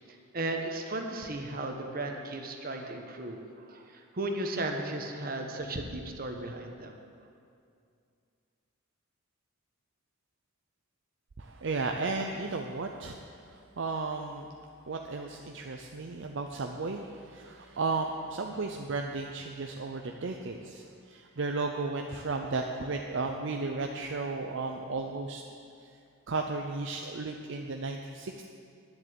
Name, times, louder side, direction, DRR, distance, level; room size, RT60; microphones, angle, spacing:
voice 1, 0.1-7.0, right 2 dB, 45° right, 3 dB, 1.1 m, -35 dB
voice 2, 11.4-14.5 14.9-25.4 25.8-25.9 26.3-28.5, right 3 dB, 60° right, 3 dB, 0.6 m, -34 dB
10.5 x 7.6 x 8.1 m, 2.4 s
head